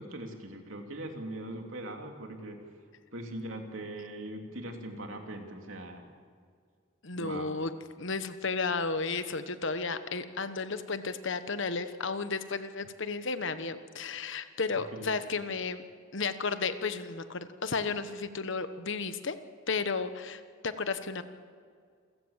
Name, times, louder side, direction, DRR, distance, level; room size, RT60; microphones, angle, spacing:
voice 1, 0.0-2.6 3.1-6.0 7.1-7.5 14.9-15.5, right 1 dB, 75° right, 3 dB, 3.1 m, -41 dB
voice 2, 7.0-7.7 8.0-15.8 16.1-19.4 19.7-21.2, left 4 dB, 65° left, 10 dB, 1.3 m, -33 dB
28.5 x 15.5 x 7.4 m, 2.1 s
head